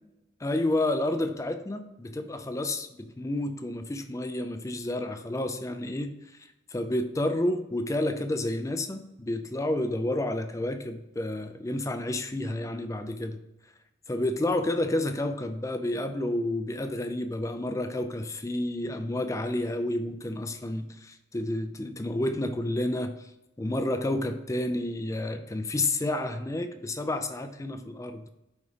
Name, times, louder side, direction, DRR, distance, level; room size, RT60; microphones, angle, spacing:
voice 1, 0.4-6.1 6.7-13.4 14.1-23.2 23.6-28.3, left 1 dB, 15° left, 8 dB, 0.4 m, -30 dB
5.0 x 4.1 x 4.9 m, 0.95 s
head